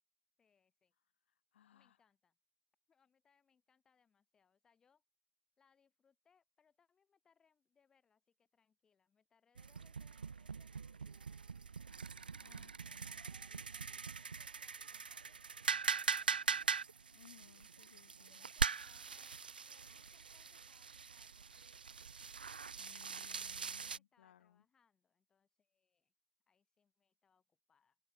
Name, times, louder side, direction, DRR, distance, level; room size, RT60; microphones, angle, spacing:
voice 1, 0.4-0.9 1.7-2.4 2.9-5.0 5.6-16.7 18.0-22.2 23.6-26.1 26.5-28.0, left 6 dB, 5° left, 4.8 m, -76 dB
voice 2, 1.3-2.0 12.3-13.2 17.1-18.5 22.8-24.6, left 10 dB, 25° left, 7.7 m, -65 dB
sound 1, 9.6-24.0, right 5 dB, 20° right, 0.4 m, -42 dB
figure-of-eight pair, 165°, 14 cm